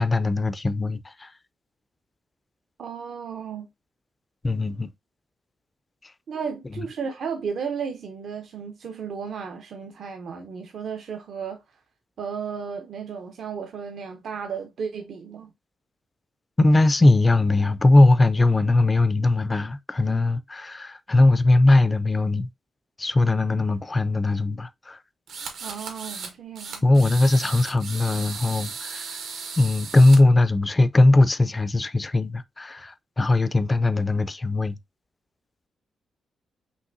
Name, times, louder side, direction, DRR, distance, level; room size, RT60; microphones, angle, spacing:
voice 1, 0.0-1.3 4.4-4.9 6.0-6.1 6.7-6.9 16.6-22.5 23.0-25.0 26.8-29.2 29.6-34.8, left 2 dB, 20° left, 0.3 m, -20 dB
voice 2, 2.8-3.7 6.3-11.6 12.2-15.5 25.6-26.8, right 6 dB, 60° right, 0.6 m, -34 dB
sound 1, 25.3-26.3 26.6-30.2, right 5 dB, 80° right, 1.2 m, -36 dB
5.5 x 2.9 x 2.6 m
wide cardioid pair, 160°, 0 cm